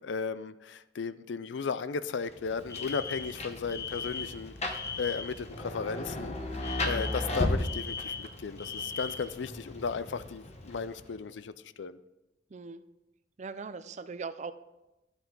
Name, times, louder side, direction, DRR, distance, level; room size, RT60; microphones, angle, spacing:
voice 1, 0.0-6.4 6.8-12.0, left 5 dB, 85° left, 15 dB, 0.5 m, -35 dB
Rain, 2.2-11.3, left 1 dB, 40° left, 1.1 m, -36 dB
Alarm, 2.7-5.4 6.6-9.3, left 5 dB, 20° left, 0.8 m, -39 dB
voice 2, 12.5-12.8 13.4-14.5, right 4 dB, 40° right, 13 dB, 0.5 m, -39 dB
12.5 x 8.1 x 3.8 m, 1.0 s
head